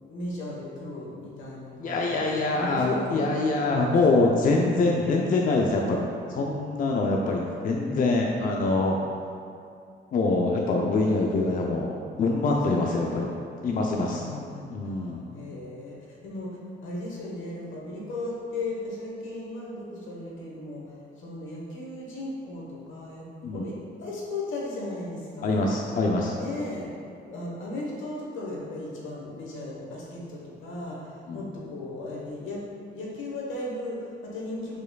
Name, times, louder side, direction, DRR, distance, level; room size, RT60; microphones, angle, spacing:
voice 1, 0.0-4.3 12.7-13.3 14.2-25.6 26.4-26.9 27.3-32.6 32.9-34.8, left 2 dB, 80° left, -4 dB, 1.2 m, -37 dB
voice 2, 1.8-6.0 6.3-9.0 10.1-13.3 13.6-14.2 14.7-15.2 23.4-23.6 25.4-26.3 31.3-31.4, left 3 dB, 45° left, 0 dB, 0.4 m, -24 dB
4.8 x 4.3 x 2.3 m, 2.4 s
cardioid pair, 90°, 20 cm